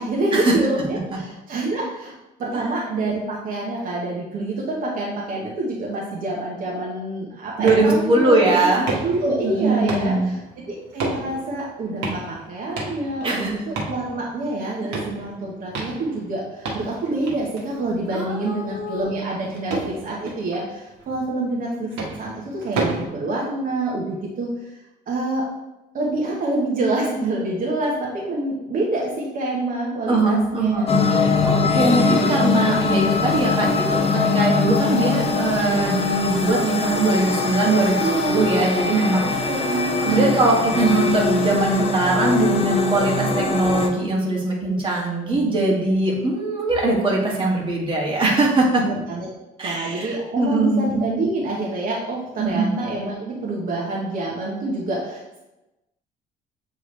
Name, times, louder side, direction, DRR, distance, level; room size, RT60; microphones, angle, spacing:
voice 1, 0.0-2.1 2.4-8.7 9.0-10.4 10.7-19.7 20.0-21.9 22.2-24.5 25.1-25.4 25.9-30.9 38.0-38.5 39.5-40.2 48.8-49.3 49.6-55.4, right 2 dB, 55° right, -4 dB, 1.3 m, -26 dB
voice 2, 7.6-8.9 9.4-10.3 13.2-13.5 14.8-14.9 18.1-19.0 30.1-31.0 31.4-39.5 40.0-48.8 49.6-50.8 52.4-52.7, right 2 dB, 30° right, -3 dB, 1.9 m, -21 dB
sound 1, 7.7-23.0, right 3 dB, 90° right, 1.5 m, -33 dB
sound 2, 30.9-43.9, left 4 dB, 35° left, 0.8 m, -22 dB
8.1 x 3.6 x 3.3 m, 0.97 s
cardioid pair, 110°, 17 cm